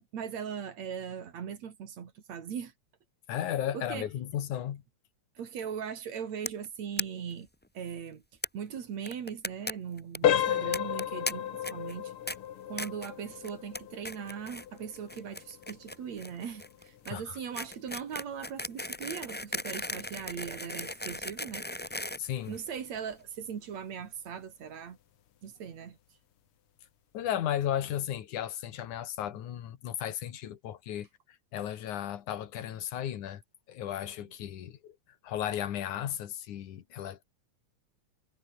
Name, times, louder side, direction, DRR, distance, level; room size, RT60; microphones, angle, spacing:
voice 1, 0.1-2.7 3.7-4.1 5.4-7.5 7.7-8.2 8.5-12.1 12.7-21.6 22.5-25.0 25.4-26.0 34.2-34.3, right 7 dB, 65° right, 3.4 m, -39 dB
voice 2, 3.3-4.8 17.1-17.4 22.2-22.6 27.1-31.1 31.5-33.4 33.7-35.0 35.2-37.2, left 11 dB, 85° left, 3.1 m, -34 dB
sound 1, 6.5-6.7 7.0-7.1 7.3-7.4 7.6-7.7 8.4-8.5 9.1-9.7 10.0-10.2 10.7-11.3 11.6-11.9 12.3-12.4 12.8-13.1 13.4-13.8 14.0-14.7 14.9-23.0, left 1 dB, 5° left, 0.7 m, -37 dB
sound 2, 10.2-20.9 21.3-21.5 22.1-22.2 22.7-22.8, left 10 dB, 55° left, 1.8 m, -35 dB
omnidirectional pair, 3.4 m